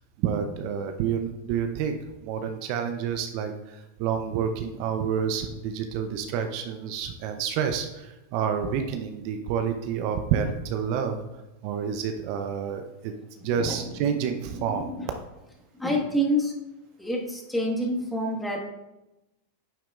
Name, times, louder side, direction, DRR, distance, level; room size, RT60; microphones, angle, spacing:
voice 1, 0.2-11.2 11.6-13.1 13.4-14.9, right 7 dB, 55° right, 6 dB, 0.7 m, -29 dB
voice 2, 13.4-13.9 14.5-15.1 15.8-16.6 17.0-18.6, equal, 5° left, -1 dB, 1.6 m, -28 dB
9.1 x 7.3 x 2.5 m, 0.99 s
hypercardioid pair, 105°, 0 cm